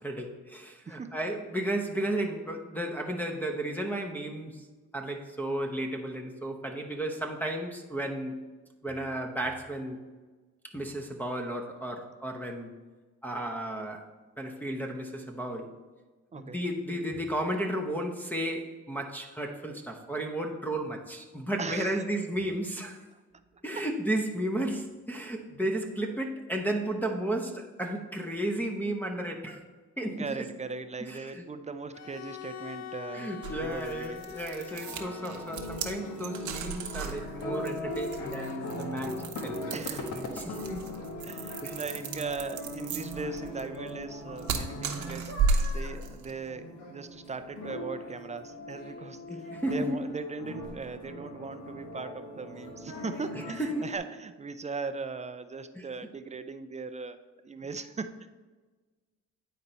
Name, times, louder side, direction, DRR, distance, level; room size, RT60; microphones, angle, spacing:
voice 1, 0.0-4.7 4.9-8.4 8.8-10.0 10.7-12.7 13.2-14.0 14.4-15.7 16.3-23.0 23.6-29.6 30.0-30.4 31.0-31.5 33.1-40.8 41.6-41.8 49.3-49.9 53.3-53.9 55.7-55.8, right 1 dB, 5° left, 3 dB, 0.8 m, -33 dB
voice 2, 21.6-22.0 23.3-23.4 23.8-23.9 30.1-34.4 39.7-40.4 41.2-45.3 45.7-57.2 57.4-58.3, right 4 dB, 25° right, 10 dB, 0.4 m, -39 dB
Bowed string instrument, 31.9-36.9, left 10 dB, 65° left, 0.5 m, -44 dB
sound 1, 33.4-46.4, right 4 dB, 70° right, 0.9 m, -34 dB
sound 2, 34.7-54.0, left 1 dB, 85° left, 1.3 m, -40 dB
9.5 x 4.3 x 4.0 m, 1.3 s
cardioid pair, 90°, 30 cm